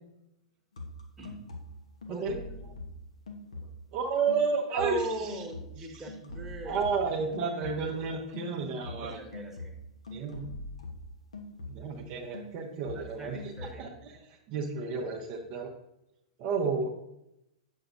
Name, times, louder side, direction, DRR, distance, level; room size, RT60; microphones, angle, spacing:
sound 1, 0.8-4.0 4.3-8.1 8.3-12.0 12.3-13.7, left 1 dB, 75° left, 1.0 m, -44 dB
voice 1, 2.1-2.6 4.7-6.8 9.0-9.8 12.9-13.9, right 1 dB, 10° right, 0 dB, 1.2 m, -39 dB
voice 2, 3.9-5.4 5.8-6.1 6.6-9.2 10.1-10.4 11.7-15.7 16.4-16.9, right 5 dB, 40° right, 0 dB, 0.8 m, -32 dB
7.6 x 6.3 x 2.6 m, 0.84 s
figure-of-eight pair, 100°, 3 cm